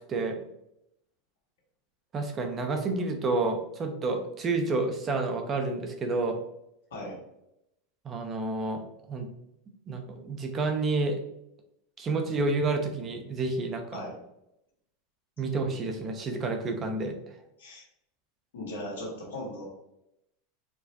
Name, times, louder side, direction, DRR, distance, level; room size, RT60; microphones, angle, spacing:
voice 1, 0.1-0.4 2.1-6.4 8.0-8.8 9.1-9.3 9.9-11.2 12.0-14.0 15.4-17.4, right 3 dB, 30° right, 5 dB, 0.7 m, -29 dB
voice 2, 18.5-19.6, left 1 dB, 85° left, -4 dB, 1.4 m, -37 dB
4.4 x 2.1 x 2.8 m, 0.82 s
hypercardioid pair, 105°, 0 cm